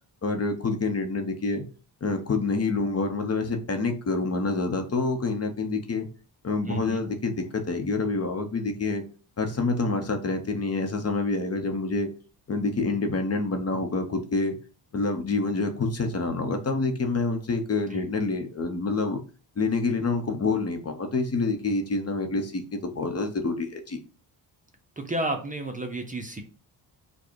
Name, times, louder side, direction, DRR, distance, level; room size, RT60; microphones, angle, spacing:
voice 1, 0.2-1.6 2.0-6.1 6.4-9.0 9.4-12.1 12.5-14.6 14.9-19.2 19.6-24.0, left 3 dB, 35° left, 0.9 m, -27 dB
voice 2, 6.7-7.0 17.9-18.0 25.0-26.4, right 2 dB, 20° right, 0.6 m, -31 dB
4.8 x 2.3 x 4.6 m
cardioid pair, 115°, 41 cm